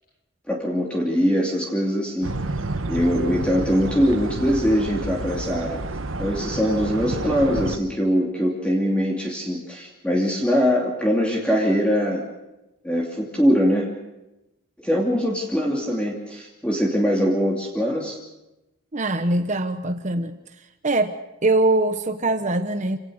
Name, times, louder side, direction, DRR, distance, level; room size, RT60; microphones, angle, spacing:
voice 1, 0.5-2.3 2.9-5.8 6.2-12.2 12.8-13.9 14.8-18.2, equal, 5° left, -2 dB, 2.8 m, -22 dB
sound 1, 2.2-7.8, right 2 dB, 65° right, 1.3 m, -30 dB
voice 2, 18.9-20.3 20.8-21.1 21.4-23.0, right 2 dB, 35° right, 7 dB, 1.0 m, -22 dB
27.0 x 18.0 x 6.5 m, 0.95 s
head